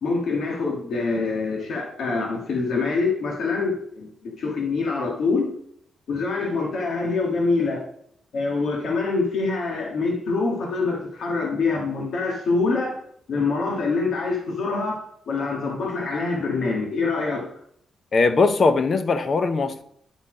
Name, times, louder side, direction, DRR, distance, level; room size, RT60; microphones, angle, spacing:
voice 1, 0.0-5.6 6.1-7.8 8.3-13.0 13.3-15.0 15.3-17.5, left 3 dB, 70° left, 1.7 m, -25 dB
voice 2, 18.1-19.8, left 4 dB, 35° left, 0.6 m, -20 dB
9.8 x 4.2 x 5.0 m
wide cardioid pair, 170°, 0 cm